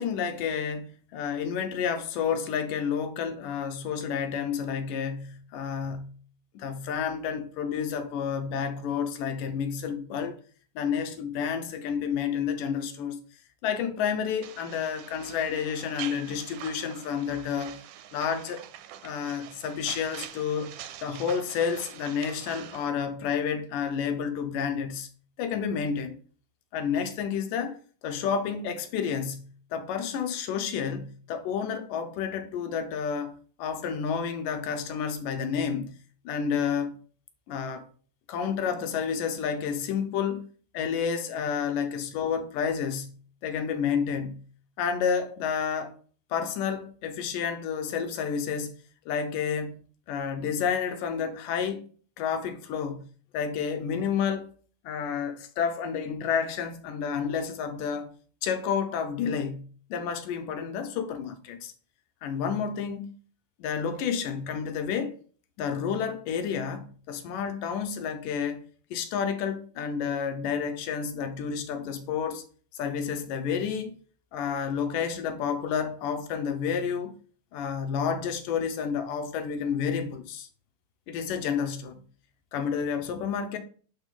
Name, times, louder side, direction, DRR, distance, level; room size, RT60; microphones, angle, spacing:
voice 1, 0.0-6.1 6.6-10.4 10.8-13.2 13.6-17.8 18.1-18.6 19.0-25.1 25.4-26.2 26.7-27.8 28.0-36.0 36.3-37.0 37.5-37.9 38.3-40.5 40.7-43.1 43.4-44.4 44.8-46.0 46.3-48.7 49.1-49.8 50.1-51.9 52.2-53.1 53.3-54.5 54.8-58.1 58.4-61.7 62.2-63.1 63.6-65.2 65.6-68.6 68.9-72.4 72.7-74.0 74.3-77.1 77.5-80.5 81.1-82.0 82.5-83.6, left 7 dB, 80° left, 2.4 m, -30 dB
sound 1, 14.4-22.9, right 11 dB, 80° right, 2.2 m, -44 dB
10.5 x 4.5 x 3.8 m
omnidirectional pair, 3.8 m